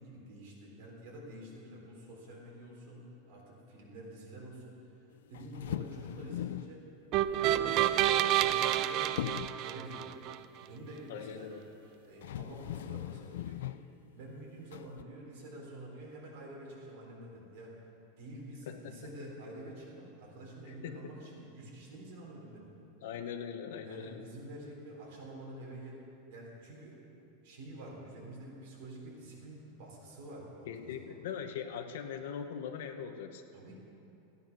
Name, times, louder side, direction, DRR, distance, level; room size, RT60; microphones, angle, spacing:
voice 1, 0.0-3.0 3.3-4.8 5.3-6.8 7.1-10.3 10.6-11.5 12.0-13.8 14.1-17.7 18.2-22.7 23.8-26.0 26.3-27.0 27.4-31.2 33.5-33.7, right 1 dB, 45° right, -3 dB, 3.9 m, -48 dB
sound 1, 5.3-6.8 8.2-8.8 9.2-9.7 11.7-11.8 12.2-13.9 14.7-15.0, left 12 dB, 80° left, 0.3 m, -39 dB
sound 2, 7.1-10.4, right 12 dB, 30° right, 0.4 m, -29 dB
voice 2, 11.1-11.6 18.7-19.1 20.7-21.0 23.0-24.2 30.7-33.4, left 7 dB, 60° left, 7 dB, 1.0 m, -41 dB
15.5 x 9.5 x 6.1 m, 2.9 s
supercardioid pair, 180°, 0 cm